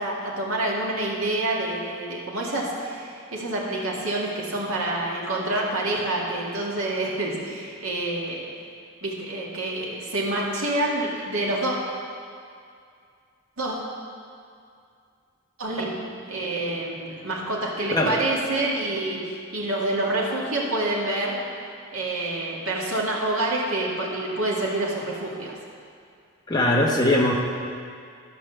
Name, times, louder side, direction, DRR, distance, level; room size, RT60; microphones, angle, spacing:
voice 1, 0.0-8.5 9.0-11.7 13.6-13.8 15.6-16.0 16.3-21.4 21.9-25.5, right 2 dB, 85° right, -3 dB, 2.0 m, -27 dB
voice 2, 26.5-27.3, left 1 dB, 20° left, -2 dB, 1.1 m, -20 dB
12.5 x 5.2 x 6.9 m, 2.3 s
head